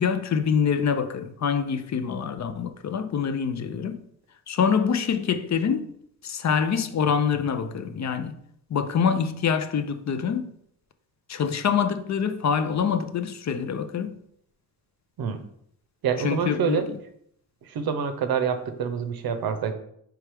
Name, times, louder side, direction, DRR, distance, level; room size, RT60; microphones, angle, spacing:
voice 1, 0.0-4.0 4.5-5.9 6.2-8.4 8.7-10.5 11.3-14.1 16.2-17.0, left 7 dB, 50° left, 0.5 m, -25 dB
voice 2, 16.0-16.9 17.7-19.7, right 7 dB, 90° right, 0.6 m, -26 dB
4.7 x 3.4 x 3.3 m
cardioid pair, 85°, 35 cm